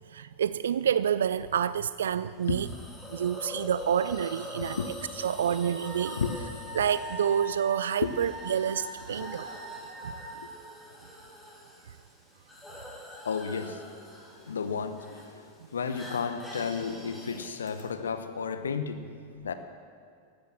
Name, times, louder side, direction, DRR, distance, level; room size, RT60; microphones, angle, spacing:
voice 1, 0.1-2.7 3.1-4.8 5.2-6.2 6.7-9.5 10.0-10.1, right 8 dB, 65° right, 0.3 m, -28 dB
Hiss, 2.4-17.8, left 1 dB, 5° left, 4.0 m, -45 dB
voice 2, 4.6-4.9 5.2-5.6 6.1-6.4 8.0-8.1 9.2-9.3 10.3-10.5 13.2-14.0 14.4-15.5 15.7-19.1 19.4-19.5, left 6 dB, 70° left, 1.0 m, -33 dB
Wind instrument woodwind instrument, 5.6-10.5, right 1 dB, 35° right, 5.1 m, -42 dB
14.0 x 12.0 x 7.5 m
figure-of-eight pair, 90°, 0 cm